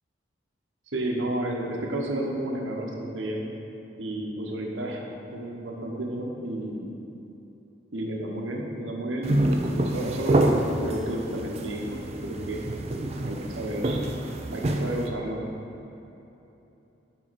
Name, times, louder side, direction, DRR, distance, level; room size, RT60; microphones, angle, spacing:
voice 1, 0.9-3.4 4.0-5.1 5.3-6.9 7.9-12.6 13.2-14.0 14.5-15.4, right 1 dB, 85° right, 0 dB, 1.0 m, -31 dB
sound 1, 9.2-15.1, right 1 dB, 35° right, 0.4 m, -27 dB
7.6 x 5.6 x 4.2 m, 3.0 s
head